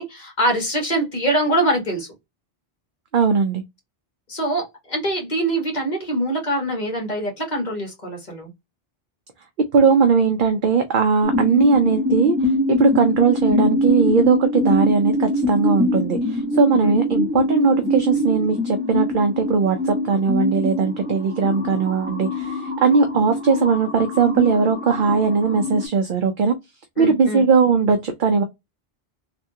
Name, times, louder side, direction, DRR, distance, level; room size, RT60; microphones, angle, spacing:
voice 1, 0.0-2.1 4.3-8.5 16.8-17.0 27.0-27.5, right 1 dB, 45° left, 1.5 m, -24 dB
voice 2, 3.1-3.6 9.7-26.5 27.0-28.4, right 5 dB, 60° right, 0.7 m, -19 dB
sound 1, 11.2-25.9, left 1 dB, 10° right, 1.0 m, -24 dB
3.4 x 2.3 x 2.7 m
omnidirectional pair, 1.0 m